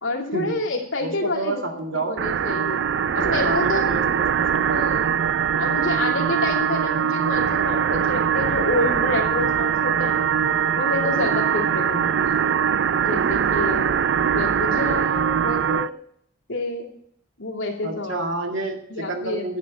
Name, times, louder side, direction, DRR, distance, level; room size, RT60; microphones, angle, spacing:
voice 1, 0.0-2.9 3.1-3.9 4.6-5.0 5.6-10.3 10.7-12.4 13.0-13.9 14.3-15.9 16.5-16.9 17.4-18.2 18.9-19.4, left 2 dB, 80° left, -1 dB, 2.6 m, -28 dB
voice 2, 1.0-2.2 3.1-4.9 17.8-19.6, right 2 dB, 75° right, 3 dB, 1.9 m, -29 dB
sound 1, 2.2-15.9, right 7 dB, 60° right, 0.3 m, -22 dB
11.0 x 7.0 x 6.9 m, 0.68 s
head